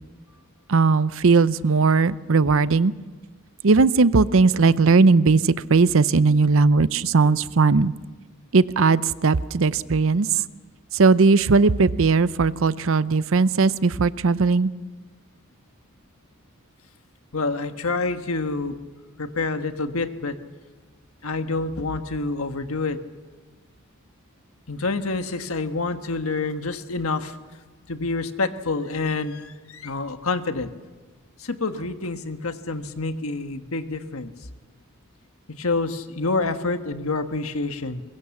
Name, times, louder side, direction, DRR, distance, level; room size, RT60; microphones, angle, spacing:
voice 1, 0.7-2.9 3.6-7.9 8.5-10.4 10.9-14.7, right 4 dB, 65° right, 16 dB, 0.6 m, -18 dB
voice 2, 17.3-18.7 19.2-20.4 21.2-23.0 24.7-27.4 27.9-30.7 31.4-34.3 35.6-38.0, left 3 dB, 80° left, 8 dB, 1.4 m, -27 dB
22.5 x 22.0 x 7.2 m, 1.3 s
head